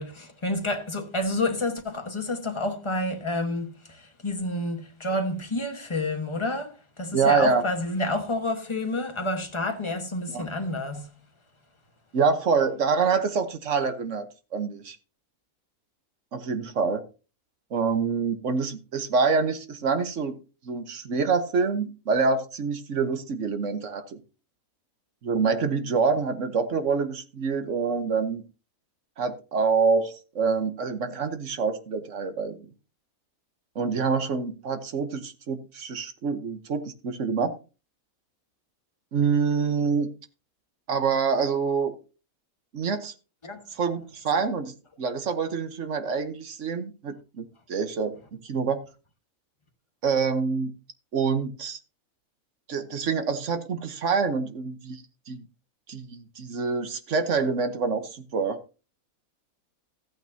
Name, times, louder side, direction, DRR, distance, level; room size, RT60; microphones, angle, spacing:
voice 1, 0.0-11.3 43.4-43.6, left 2 dB, 20° left, 1.2 m, -29 dB
voice 2, 7.1-7.6 10.3-10.5 12.1-14.3 14.5-15.0 16.3-17.0 17.7-20.4 20.6-24.0 25.2-28.4 29.2-32.7 33.7-37.6 39.1-40.1 40.9-42.0 42.7-43.1 43.8-44.7 45.0-48.1 48.4-48.8 50.0-50.7 51.1-51.8 52.7-55.4 55.9-58.6, right 5 dB, 60° right, 1.3 m, -26 dB
14.0 x 8.9 x 2.7 m
omnidirectional pair, 1.5 m